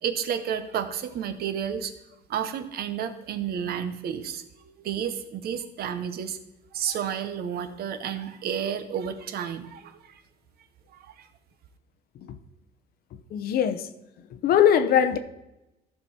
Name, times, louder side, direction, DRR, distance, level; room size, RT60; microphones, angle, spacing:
voice 1, 0.0-1.9 2.3-6.4 6.7-10.2 10.9-11.3, right 8 dB, 65° right, 1.0 m, -31 dB
voice 2, 13.3-13.9 14.3-15.2, left 9 dB, 65° left, 0.8 m, -21 dB
14.0 x 5.9 x 4.3 m
cardioid pair, 110°, 17 cm